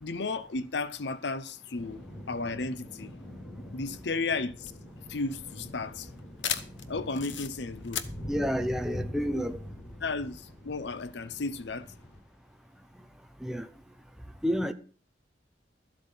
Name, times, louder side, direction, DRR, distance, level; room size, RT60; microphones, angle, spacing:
voice 1, 0.0-3.1 3.7-4.7 5.1-6.1 6.9-8.0 9.3-9.4 10.0-11.9, left 3 dB, 65° left, 0.7 m, -34 dB
sound 1, 1.7-12.2, left 1 dB, 40° left, 5.2 m, -44 dB
sound 2, 4.5-9.7, left 9 dB, 80° left, 1.0 m, -38 dB
voice 2, 8.3-9.6 13.4-13.7 14.4-14.7, equal, 5° right, 0.9 m, -29 dB
13.0 x 8.1 x 5.6 m
head